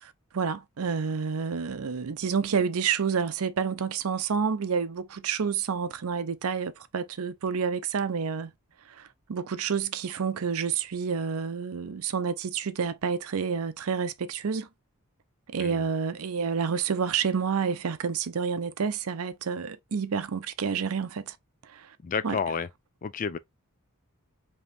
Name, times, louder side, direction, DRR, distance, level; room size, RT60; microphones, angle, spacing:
voice 1, 0.0-8.5 9.0-14.7 15.5-21.4 21.7-21.9 22.2-22.4, right 6 dB, 75° right, 0.5 m, -29 dB
voice 2, 22.0-22.7 23.0-23.4, left 6 dB, 35° left, 0.4 m, -30 dB
5.1 x 3.0 x 2.5 m
head